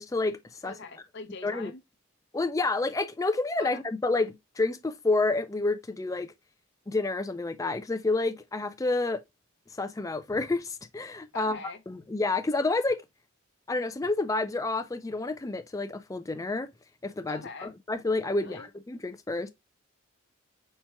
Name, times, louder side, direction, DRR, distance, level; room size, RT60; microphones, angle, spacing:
voice 1, 0.0-0.7 1.4-1.7 2.3-6.3 6.9-9.2 9.8-11.6 11.9-13.0 13.7-16.7 17.0-19.5, left 3 dB, 15° left, 0.4 m, -29 dB
voice 2, 0.6-1.8 3.6-3.8 11.3-11.8 17.3-17.7 18.4-18.7, left 3 dB, 55° left, 0.8 m, -42 dB
4.4 x 4.3 x 2.2 m
head